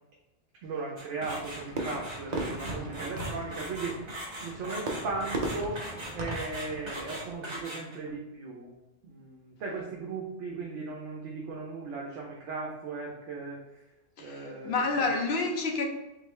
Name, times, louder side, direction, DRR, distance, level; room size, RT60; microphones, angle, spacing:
voice 1, 0.6-4.0 4.4-5.8 6.1-8.7 9.0-13.8 14.2-15.1, right 3 dB, 70° right, 1.0 m, -37 dB
sound 1, 1.0-8.1, equal, 25° right, 0.9 m, -40 dB
Fireworks, 1.2-7.3, right 2 dB, 45° right, 0.6 m, -37 dB
voice 2, 14.2-15.8, left 3 dB, 60° left, 0.9 m, -29 dB
3.8 x 3.1 x 3.2 m
omnidirectional pair, 1.3 m